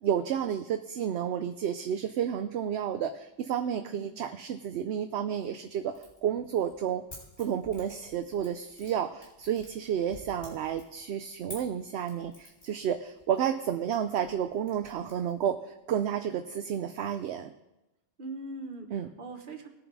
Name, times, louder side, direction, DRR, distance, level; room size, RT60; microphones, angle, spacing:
voice 1, 0.0-7.0 7.4-17.5 18.9-19.1, right 9 dB, 70° right, 8 dB, 0.8 m, -31 dB
sound 1, 1.6-1.7 2.2-2.3 2.5-3.3 3.7-3.8 4.3-4.4 4.7-5.5 5.9-16.2, left 1 dB, 70° left, 4.9 m, -53 dB
voice 2, 3.7-4.2 18.2-19.7, right 2 dB, 45° right, 5 dB, 1.4 m, -41 dB
19.5 x 7.1 x 4.8 m, 0.98 s
omnidirectional pair, 1.2 m